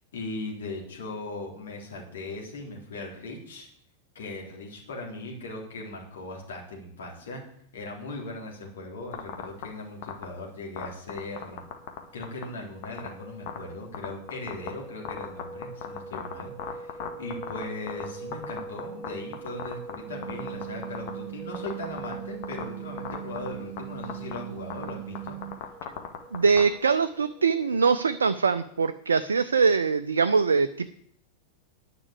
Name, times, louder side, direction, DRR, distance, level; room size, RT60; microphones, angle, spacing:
voice 1, 0.1-3.7 4.2-7.4 7.7-11.6 12.1-25.4, left 2 dB, 65° left, -1 dB, 3.6 m, -39 dB
sound 1, 9.1-9.6 10.0-10.2 10.8-12.0 12.2-12.4 12.8-13.1 13.5-13.6 13.9-14.7 15.0-18.0 18.3-19.1 19.3-19.9 20.2-21.1 21.5-22.1 22.4-22.6 23.0-23.5 23.8-23.9 24.0-24.4 24.7-26.6, left 12 dB, 45° left, 1.8 m, -34 dB
sound 2, 11.1-28.8, right 3 dB, 10° left, 0.9 m, -44 dB
sound 3, 20.1-25.6, right 18 dB, 55° right, 1.5 m, -40 dB
voice 2, 26.3-30.9, right 5 dB, 70° right, 10 dB, 0.5 m, -23 dB
9.8 x 6.1 x 8.4 m, 0.65 s
figure-of-eight pair, 90°, 0 cm